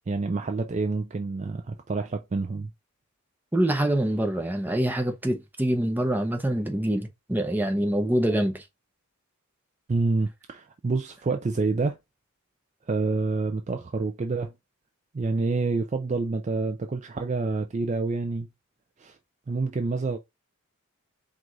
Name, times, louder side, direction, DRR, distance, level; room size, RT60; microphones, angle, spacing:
voice 1, 0.1-2.7 9.9-12.0 12.9-14.5 15.1-18.5 19.0-19.2 19.5-20.2, right 3 dB, 30° right, 0.3 m, -27 dB
voice 2, 3.5-8.6, right 1 dB, 10° right, 0.7 m, -25 dB
4.6 x 2.4 x 3.9 m
head